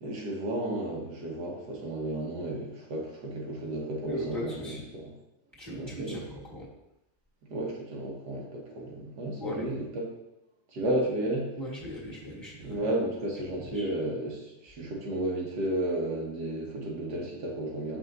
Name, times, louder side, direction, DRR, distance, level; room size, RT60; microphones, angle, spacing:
voice 1, 0.0-5.1 5.7-6.2 7.5-10.1 10.7-11.5 12.6-18.0, right 1 dB, 85° right, -2 dB, 1.9 m, -33 dB
voice 2, 4.1-4.8 5.6-6.7 9.4-9.7 11.6-12.8 13.5-13.9, left 1 dB, 10° left, -7 dB, 1.7 m, -38 dB
6.3 x 5.7 x 2.6 m, 0.88 s
omnidirectional pair, 1.7 m